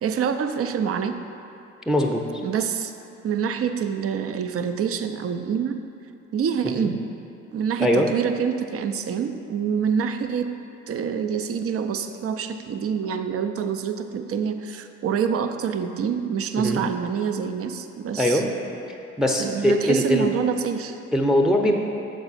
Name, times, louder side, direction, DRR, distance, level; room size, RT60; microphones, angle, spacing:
voice 1, 0.0-1.2 2.4-2.9 3.2-5.8 6.3-7.0 7.5-10.5 10.9-18.4 19.4-21.0, right 7 dB, 40° right, 8 dB, 0.5 m, -26 dB
voice 2, 1.9-2.4 6.8-6.9 7.8-8.1 16.6-16.8 18.2-18.5 19.2-20.3 21.1-21.8, equal, ahead, 2 dB, 0.6 m, -21 dB
7.0 x 4.7 x 4.1 m, 2.7 s
hypercardioid pair, 50°, 36 cm